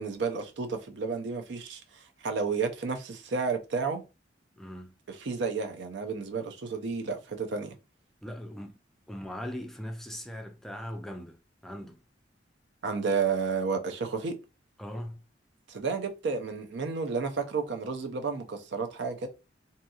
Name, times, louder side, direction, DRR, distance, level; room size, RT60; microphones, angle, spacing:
voice 1, 0.0-4.0 5.1-7.7 12.8-14.4 15.7-19.3, right 5 dB, 70° right, 0.5 m, -31 dB
voice 2, 4.6-4.9 8.2-8.8 9.1-11.4 11.6-12.0 14.8-15.2, equal, ahead, 0.3 m, -39 dB
2.7 x 2.6 x 2.3 m
head